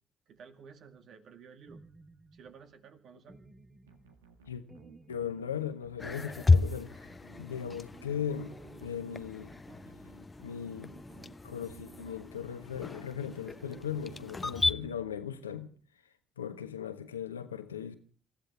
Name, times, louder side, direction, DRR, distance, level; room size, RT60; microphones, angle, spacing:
voice 1, 0.3-1.8 2.3-3.5, right 6 dB, 55° right, 2.1 m, -53 dB
sound 1, 1.7-2.5 3.3-4.2 4.7-5.6 6.0-6.8 7.3-8.1 8.5-9.3 9.7-10.5 10.9-11.8, right 2 dB, 35° right, 2.9 m, -56 dB
sound 2, 3.9-15.7, right 6 dB, 80° right, 1.7 m, -56 dB
voice 2, 5.1-7.1 7.4-9.5 10.4-10.9 11.4-15.7 16.4-18.0, left 8 dB, 85° left, 1.2 m, -38 dB
sound 3, 6.0-14.7, left 3 dB, 25° left, 0.9 m, -33 dB
28.0 x 14.5 x 3.4 m
figure-of-eight pair, 50°, 0 cm